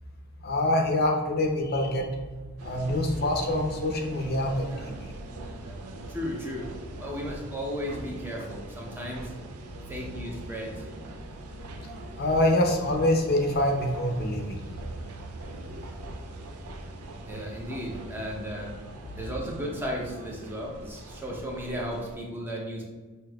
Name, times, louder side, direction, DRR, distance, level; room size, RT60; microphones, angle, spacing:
voice 1, 0.4-2.1 2.6-4.9 12.2-14.6, left 1 dB, 45° left, 2 dB, 0.6 m, -25 dB
sound 1, 2.6-22.2, right 2 dB, 90° right, 0.5 m, -42 dB
voice 2, 6.1-6.7 7.0-9.3 9.9-10.9 17.3-18.8 19.1-22.8, equal, 10° right, -2 dB, 0.6 m, -35 dB
5.9 x 2.8 x 2.3 m, 1.4 s
head